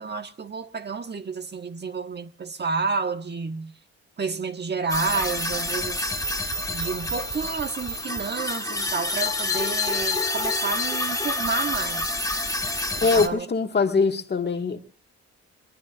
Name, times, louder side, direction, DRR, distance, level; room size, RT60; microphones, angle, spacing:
voice 1, 0.0-3.7 4.2-6.1 6.7-12.2 13.0-13.5, right 4 dB, 35° right, 1.4 m, -30 dB
sound 1, 4.9-13.3, left 2 dB, 10° left, 1.7 m, -28 dB
voice 2, 13.0-14.8, left 4 dB, 35° left, 1.8 m, -22 dB
22.5 x 21.0 x 2.5 m
cardioid pair, 85°, 29 cm